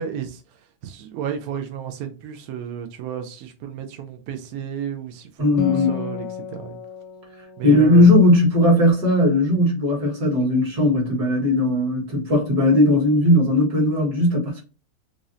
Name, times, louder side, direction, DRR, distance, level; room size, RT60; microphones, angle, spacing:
voice 1, 0.0-6.8 7.6-8.1, right 8 dB, 70° right, 0.8 m, -32 dB
voice 2, 5.4-6.0 7.6-14.6, left 1 dB, 55° right, 2.2 m, -17 dB
Acoustic guitar, 5.6-9.3, left 9 dB, 90° left, 1.5 m, -34 dB
4.8 x 2.6 x 2.6 m
omnidirectional pair, 2.2 m